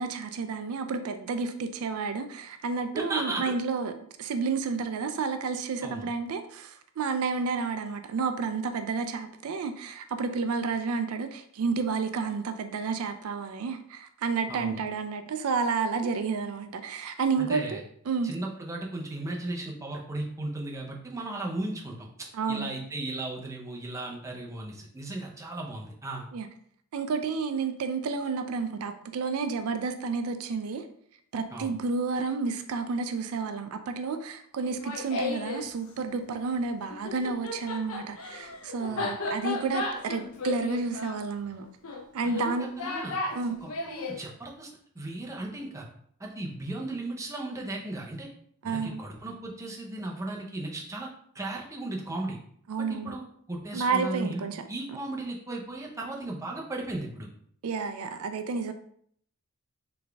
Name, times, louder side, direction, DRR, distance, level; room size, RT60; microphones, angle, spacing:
voice 1, 0.0-3.9 4.2-17.8 18.1-18.3 22.3-22.7 26.3-26.5 26.9-30.8 31.3-41.7 42.1-42.7 43.3-43.6 48.6-49.0 52.7-53.2 53.7-54.6 57.6-58.7, right 4 dB, 75° right, 8 dB, 0.4 m, -30 dB
voice 2, 2.9-3.4 5.8-6.1 14.5-14.8 17.4-17.8 18.2-26.2 31.5-31.7 38.9-39.1 42.2-43.2 43.6-44.7 44.9-45.9 46.2-48.3 48.6-51.1 51.3-52.4 52.8-54.4 54.7-57.3, right 2 dB, 15° right, -1 dB, 0.7 m, -36 dB
Laughter, 34.6-35.7 36.9-44.2, left 3 dB, 70° left, 0.6 m, -34 dB
3.9 x 3.3 x 3.4 m, 0.65 s
head